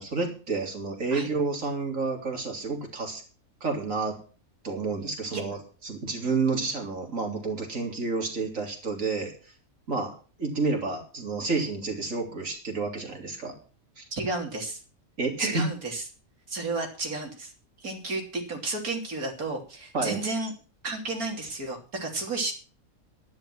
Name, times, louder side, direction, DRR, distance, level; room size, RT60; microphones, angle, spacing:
voice 1, 0.0-3.2 3.6-4.2 4.6-9.5 9.9-10.1 10.4-13.6 14.0-14.1 15.2-15.6 19.9-20.2, right 4 dB, 65° right, 2 dB, 3.8 m, -30 dB
voice 2, 14.1-14.8 15.4-16.0 16.5-17.5 17.8-20.5 20.8-22.5, right 3 dB, 85° right, 2 dB, 3.8 m, -32 dB
11.5 x 11.0 x 6.1 m, 0.38 s
omnidirectional pair, 1.5 m